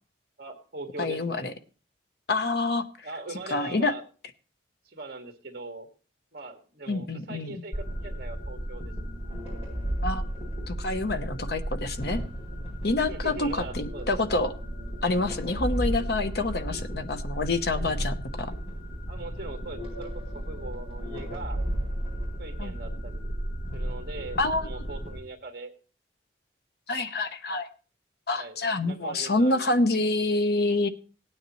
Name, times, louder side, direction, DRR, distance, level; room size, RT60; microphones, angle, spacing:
voice 1, 0.4-1.4 3.0-4.0 4.9-5.9 6.3-8.9 13.1-14.1 17.7-17.9 19.1-21.6 22.4-23.3 23.7-25.7 28.3-28.6 28.8-29.7, right 3 dB, 50° right, 3 dB, 1.9 m, -41 dB
voice 2, 1.0-1.5 2.3-3.1 3.5-3.9 6.9-7.6 10.0-10.2 10.7-12.2 12.8-14.5 15.0-18.5 22.6-22.9 24.4-24.7 26.9-27.7 28.3-30.9, left 2 dB, 55° left, 8 dB, 0.9 m, -27 dB
sound 1, 7.7-25.2, equal, 35° left, 7.9 m, -34 dB
17.5 x 9.7 x 3.1 m, 0.38 s
head